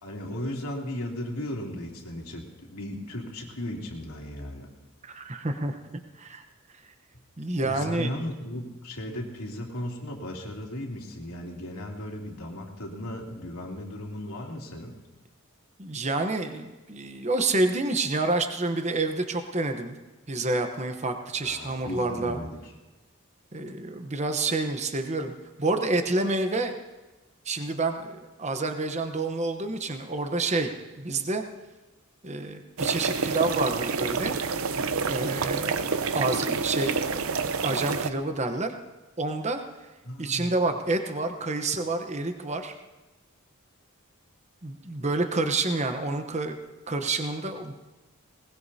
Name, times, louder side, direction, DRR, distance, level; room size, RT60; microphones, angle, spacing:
voice 1, 0.0-4.7 7.6-14.9 21.4-22.7 40.0-40.5, left 1 dB, 85° left, -1 dB, 2.8 m, -36 dB
voice 2, 5.0-5.8 6.2-6.4 7.4-8.1 15.8-20.0 20.3-22.4 23.5-25.3 25.6-26.8 27.4-31.4 32.2-34.3 35.1-35.8 36.1-37.2 37.6-38.7 39.2-39.6 40.2-42.7 44.6-46.6 46.9-47.7, right 2 dB, 30° right, 6 dB, 0.9 m, -28 dB
sound 1, 32.8-38.1, right 5 dB, 75° right, 0.7 m, -28 dB
21.0 x 19.5 x 2.8 m, 1.1 s
head